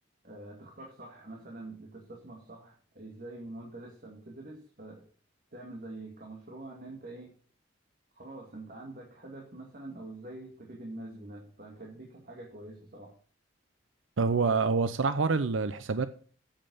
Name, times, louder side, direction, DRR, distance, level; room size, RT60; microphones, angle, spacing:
voice 1, 0.2-5.1 5.5-7.4 8.2-13.1, right 2 dB, 45° right, 2.2 m, -45 dB
voice 2, 14.2-16.1, right 4 dB, 80° right, 0.7 m, -26 dB
8.8 x 7.7 x 6.9 m
head